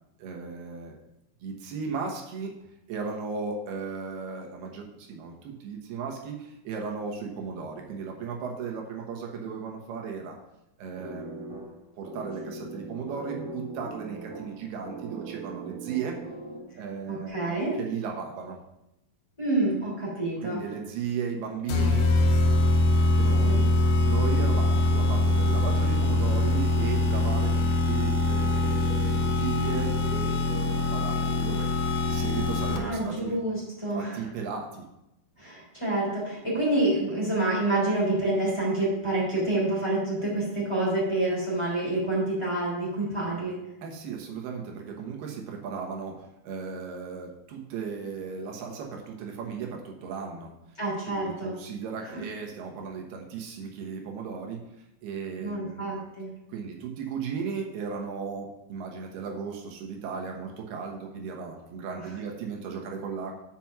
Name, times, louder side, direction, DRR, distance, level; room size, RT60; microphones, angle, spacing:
voice 1, 0.2-1.0 1.4-2.5 2.9-10.4 10.8-16.2 16.8-18.6 20.4-22.1 22.9-23.6 24.1-31.7 32.0-33.4 33.9-34.9 43.8-50.5 51.1-54.7 55.0-56.1 56.5-63.4, right 6 dB, 75° right, 1 dB, 3.1 m, -36 dB
sound 1, 11.0-16.9, right 3 dB, 45° right, 2.0 m, -40 dB
voice 2, 17.1-17.8 19.4-20.6 23.5-23.6 32.7-34.2 35.4-43.6 50.8-51.5 55.4-56.3, right 2 dB, 10° left, -6 dB, 2.6 m, -27 dB
sound 2, 21.7-33.1, left 2 dB, 75° left, 2.0 m, -23 dB
7.0 x 5.9 x 5.9 m, 0.86 s
omnidirectional pair, 4.7 m